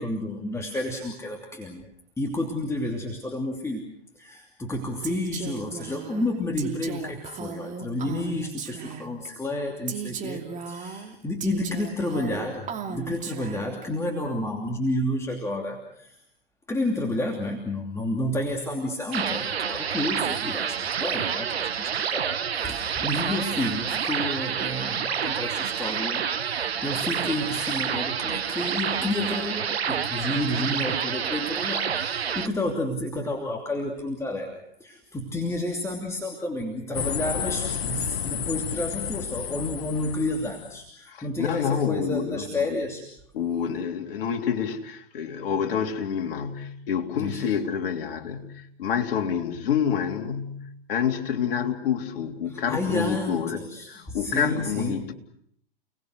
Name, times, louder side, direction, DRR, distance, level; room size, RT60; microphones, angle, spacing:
voice 1, 0.0-1.9 2.2-16.2 16.7-43.0 47.2-47.5 52.5-55.1, left 1 dB, 10° left, 1 dB, 2.9 m, -30 dB
Female speech woman speaking, 5.0-9.3 9.9-13.8, right 6 dB, 25° right, 2.7 m, -36 dB
sound 1, 19.1-32.5, right 7 dB, 85° right, 1.2 m, -28 dB
sound 2, 36.9-40.8, left 8 dB, 80° left, 1.2 m, -31 dB
voice 2, 41.1-42.8 43.3-55.1, left 8 dB, 60° left, 3 dB, 3.2 m, -28 dB
30.0 x 20.0 x 6.5 m, 0.70 s
hypercardioid pair, 115°, 30 cm